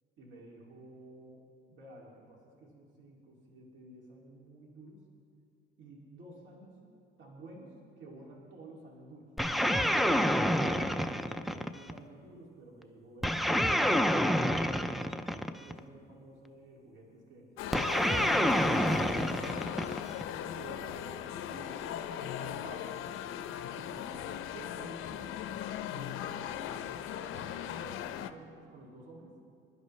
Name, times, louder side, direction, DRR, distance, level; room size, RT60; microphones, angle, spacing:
voice 1, 0.2-5.0 5.8-6.8 7.2-9.3 10.5-19.8 20.5-21.9 22.2-22.9 23.4-25.6 25.9-29.4, right 2 dB, 65° right, -3 dB, 2.6 m, -51 dB
sound 1, 9.4-12.0 13.2-15.8 17.7-20.3, equal, ahead, 0.3 m, -28 dB
sound 2, 17.6-28.3, left 10 dB, 80° left, 0.6 m, -38 dB
26.0 x 11.0 x 3.2 m, 2.3 s
cardioid pair, 155°, 21 cm